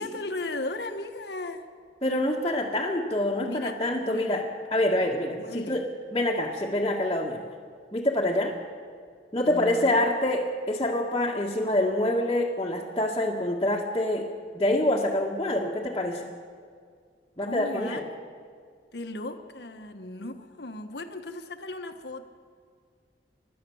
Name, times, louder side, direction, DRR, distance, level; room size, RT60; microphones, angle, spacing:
voice 1, 0.0-1.6 3.5-4.4 5.3-5.8 9.4-10.0 17.4-18.0 18.9-22.3, left 2 dB, 70° left, 7 dB, 1.6 m, -36 dB
voice 2, 2.0-4.4 4.7-7.4 7.9-8.5 9.3-16.3 17.4-18.0, left 1 dB, 25° left, -4 dB, 1.7 m, -26 dB
29.5 x 12.5 x 7.2 m, 2.1 s
head